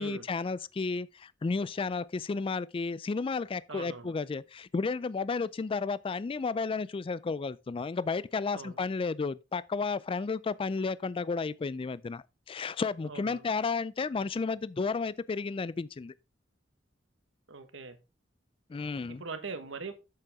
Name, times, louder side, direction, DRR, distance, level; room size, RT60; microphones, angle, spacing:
voice 1, 0.0-16.1 18.7-19.2, left 4 dB, 30° left, 0.3 m, -32 dB
voice 2, 3.7-4.1 8.5-8.8 13.0-13.5 17.5-18.0 19.2-19.9, right 4 dB, 75° right, 1.4 m, -41 dB
7.8 x 7.6 x 3.6 m
head